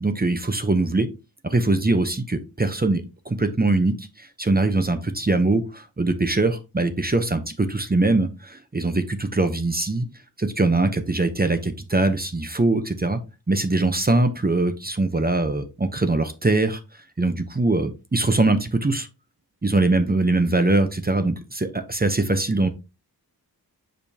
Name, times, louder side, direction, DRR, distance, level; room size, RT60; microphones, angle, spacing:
voice 1, 0.0-1.1 1.4-10.1 10.4-13.2 13.5-16.8 17.2-19.1 19.6-22.7, right 2 dB, 25° right, 8 dB, 0.9 m, -22 dB
6.9 x 5.1 x 2.9 m, 0.27 s
wide cardioid pair, 80°, 38 cm